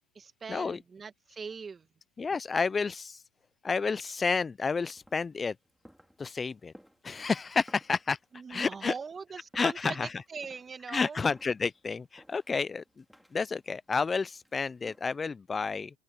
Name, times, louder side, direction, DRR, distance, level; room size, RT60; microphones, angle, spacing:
voice 1, 0.1-1.9 8.3-11.2, right 5 dB, 20° right, 2.1 m, -41 dB
voice 2, 2.2-3.2 3.6-5.5 6.2-6.7 7.0-8.2 8.5-8.9 9.5-10.1 10.9-12.8 13.3-15.9, left 4 dB, 20° left, 0.3 m, -30 dB
sound 1, 4.7-15.3, equal, ahead, 3.1 m, -60 dB
open air
supercardioid pair, 120°, 0 cm